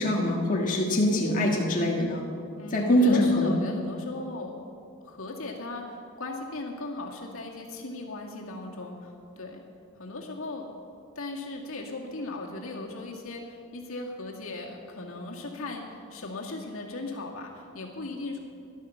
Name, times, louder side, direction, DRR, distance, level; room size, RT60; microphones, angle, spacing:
voice 1, 0.0-2.2 2.7-3.5, left 1 dB, 40° left, -2 dB, 1.6 m, -23 dB
voice 2, 2.6-4.5 5.0-9.6 10.0-10.6 11.2-18.4, left 2 dB, 75° left, -1 dB, 2.2 m, -37 dB
14.5 x 11.5 x 7.0 m, 2.5 s
head